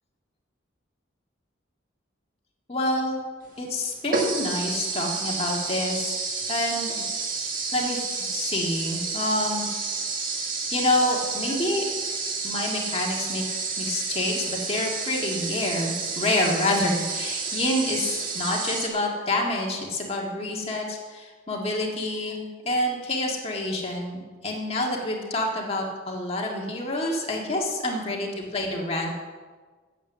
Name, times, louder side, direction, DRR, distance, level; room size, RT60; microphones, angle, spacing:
voice 1, 2.7-3.2 3.6-6.2 6.5-6.9 7.7-9.7 10.7-11.8 12.4-13.4 13.8-29.1, left 1 dB, 30° left, -1 dB, 1.8 m, -27 dB
sound 1, 3.4-3.5 4.1-18.9, right 4 dB, 45° right, 1.6 m, -30 dB
9.1 x 7.9 x 7.1 m, 1.4 s
head